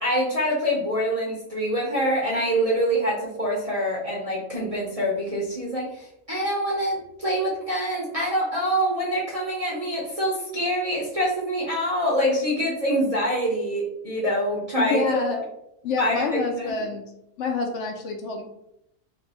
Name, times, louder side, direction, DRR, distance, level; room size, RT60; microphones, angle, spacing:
voice 1, 0.0-15.0 16.0-16.2 16.6-16.7, equal, 35° right, -6 dB, 0.6 m, -25 dB
voice 2, 14.8-15.4 15.8-17.1 17.4-18.4, left 4 dB, 70° left, 2 dB, 0.8 m, -27 dB
2.6 x 2.5 x 4.0 m, 0.80 s
omnidirectional pair, 1.4 m